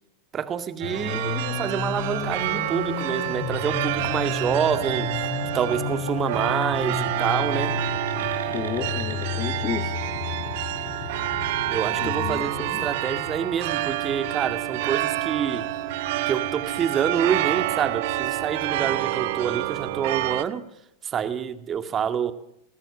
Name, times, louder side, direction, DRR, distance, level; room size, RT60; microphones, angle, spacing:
voice 1, 0.3-5.1 5.5-7.8 11.7-15.7 16.3-20.6 21.0-22.3, right 8 dB, 25° right, 2.0 m, -27 dB
sound 1, 0.8-20.4, left 8 dB, 50° left, 2.7 m, -34 dB
sound 2, 0.8-20.4, right 16 dB, 50° right, 1.2 m, -28 dB
sound 3, 4.7-14.0, right 5 dB, 70° right, 4.0 m, -45 dB
voice 2, 8.5-9.9 12.0-12.9, left 7 dB, 25° left, 1.8 m, -32 dB
27.5 x 20.5 x 7.4 m
figure-of-eight pair, 90°, 0 cm